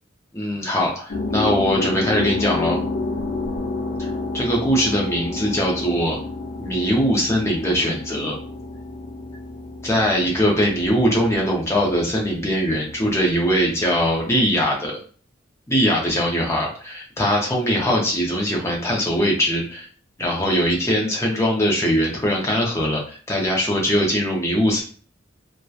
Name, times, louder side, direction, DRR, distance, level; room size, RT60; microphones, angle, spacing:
voice 1, 0.3-2.8 4.3-6.2 6.6-8.3 9.8-15.0 15.7-19.9 20.2-24.8, equal, 15° left, -2 dB, 0.6 m, -21 dB
sound 1, 1.1-14.6, left 3 dB, 65° left, 0.5 m, -30 dB
2.7 x 2.2 x 2.3 m, 0.43 s
head